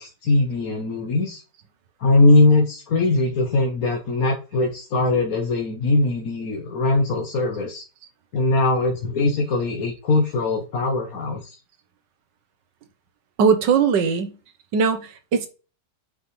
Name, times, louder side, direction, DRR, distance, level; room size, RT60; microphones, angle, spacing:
voice 1, 0.0-1.4 2.0-7.8 8.3-11.4, left 2 dB, 60° left, 1.6 m, -20 dB
voice 2, 13.4-14.4 14.7-15.5, right 6 dB, 85° right, 1.7 m, -20 dB
8.5 x 5.9 x 3.2 m
omnidirectional pair, 1.9 m